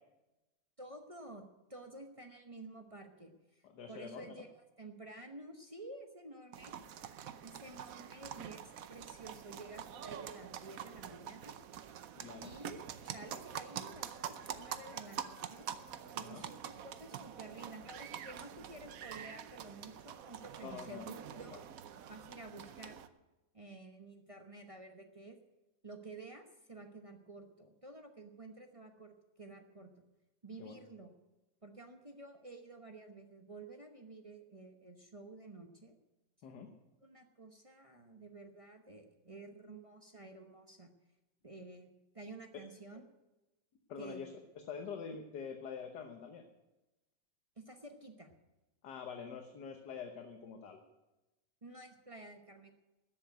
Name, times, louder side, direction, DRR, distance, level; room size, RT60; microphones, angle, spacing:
voice 1, 0.8-1.4 1.7-4.5 4.8-6.8 7.4-11.6 12.4-15.7 16.1-21.6 22.1-23.0 23.5-25.4 25.8-30.0 30.4-31.1 31.6-35.9 37.0-40.9 41.4-43.0 44.0-44.3 47.6-48.3 51.6-52.7, right 2 dB, 25° right, 4 dB, 0.8 m, -51 dB
voice 2, 3.6-4.4 12.2-12.5 16.2-16.4 20.6-21.0 21.5-21.6 30.6-30.8 36.4-36.7 43.9-44.3 44.7-46.5 48.8-50.8, left 6 dB, 65° left, 4 dB, 1.7 m, -45 dB
sound 1, 6.5-23.1, right 9 dB, 60° right, 1.0 m, -46 dB
13.5 x 7.6 x 9.2 m, 1.0 s
omnidirectional pair, 2.0 m